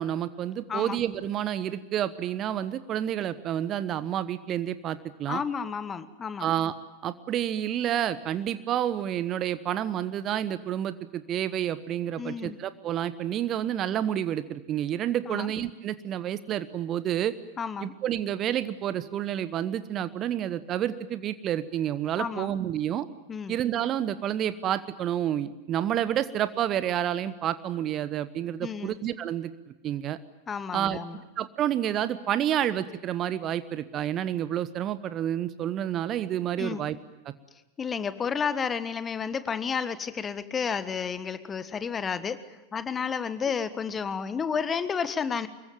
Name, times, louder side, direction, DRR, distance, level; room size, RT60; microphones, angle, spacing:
voice 1, 0.0-5.4 6.4-6.7 7.0-17.3 17.8-23.1 23.5-29.5 29.8-30.2 30.7-31.0 31.4-37.0, right 11 dB, 30° right, 14 dB, 1.1 m, -29 dB
voice 2, 5.3-6.5 12.2-12.6 15.3-15.5 17.6-17.9 22.2-22.5 23.3-23.6 28.6-29.0 30.5-31.2 36.6-36.8 37.8-45.5, left 6 dB, 20° left, 13 dB, 1.5 m, -31 dB
25.0 x 22.5 x 9.2 m, 1.0 s
figure-of-eight pair, 90°, 0 cm